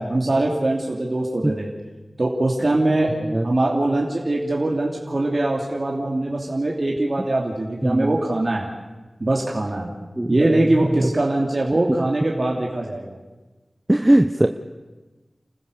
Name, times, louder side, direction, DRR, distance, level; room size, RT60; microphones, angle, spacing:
voice 1, 0.0-1.7 2.2-3.2 3.4-8.7 9.2-9.9 10.3-13.2, right 2 dB, 50° right, -2 dB, 2.9 m, -22 dB
voice 2, 7.8-8.2 10.2-10.6 11.0-11.1 13.9-14.5, right 1 dB, 20° right, 6 dB, 1.0 m, -19 dB
29.0 x 15.0 x 6.8 m, 1.2 s
wide cardioid pair, 45°, 0 cm